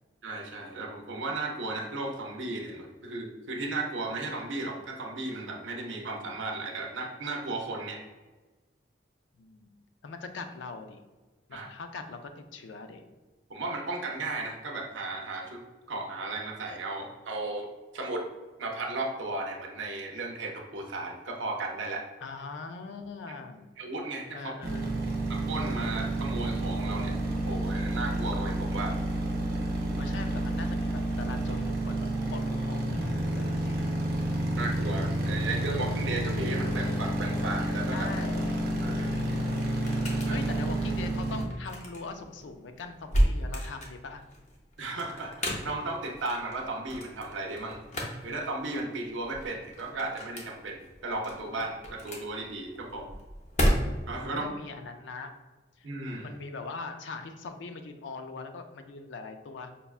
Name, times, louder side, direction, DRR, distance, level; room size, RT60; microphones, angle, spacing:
voice 1, 0.2-8.0 11.5-11.7 13.5-15.6 15.9-18.3 18.6-22.0 23.8-24.5 25.3-27.2 27.4-29.0 34.6-38.1 38.8-39.1 40.2-40.4 44.8-47.8 48.2-53.1 54.1-54.5 55.8-56.3, right 2 dB, 90° right, 1 dB, 0.6 m, -35 dB
voice 2, 9.4-9.7 10.0-11.0 11.5-13.0 22.2-23.7 24.3-25.1 30.0-34.0 37.9-38.6 38.9-39.3 40.3-44.2 53.0-53.2 54.3-55.3 55.8-55.9 56.2-59.7, left 4 dB, 80° left, 7 dB, 0.4 m, -41 dB
sound 1, 24.6-41.4, right 1 dB, 50° right, 0.6 m, -30 dB
sound 2, 39.4-54.3, equal, 40° left, 0.6 m, -33 dB
5.3 x 2.2 x 2.3 m, 1.2 s
head